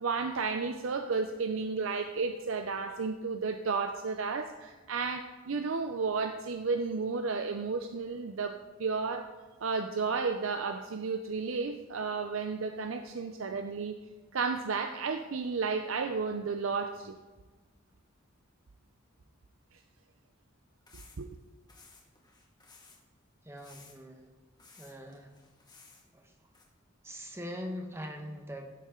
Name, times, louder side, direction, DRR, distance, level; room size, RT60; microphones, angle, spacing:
voice 1, 0.0-9.3 9.6-13.9 14.3-17.1 21.2-21.4, right 4 dB, 80° right, 7 dB, 0.6 m, -32 dB
sound 1, 20.9-21.4 21.7-23.0 23.6-24.2 24.6-26.0 26.5-26.6, left 4 dB, 20° left, 1.9 m, -57 dB
voice 2, 23.4-24.3 24.8-25.3 26.1-26.3 27.0-28.7, equal, 15° right, 3 dB, 1.1 m, -42 dB
16.0 x 7.5 x 3.8 m, 1.3 s
head